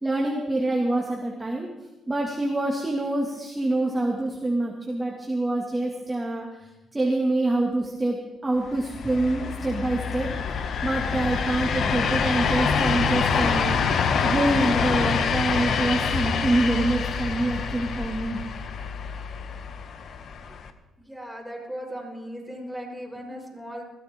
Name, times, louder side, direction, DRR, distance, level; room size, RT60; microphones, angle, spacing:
voice 1, 0.0-1.7 2.1-10.4 10.8-13.8 14.2-18.4, right 2 dB, 15° right, -1 dB, 2.2 m, -26 dB
sound 1, 8.8-20.7, left 6 dB, 60° left, 1.3 m, -26 dB
voice 2, 21.0-23.8, equal, ahead, -1 dB, 6.0 m, -37 dB
21.0 x 15.0 x 3.7 m, 1.1 s
cardioid pair, 90°, 0 cm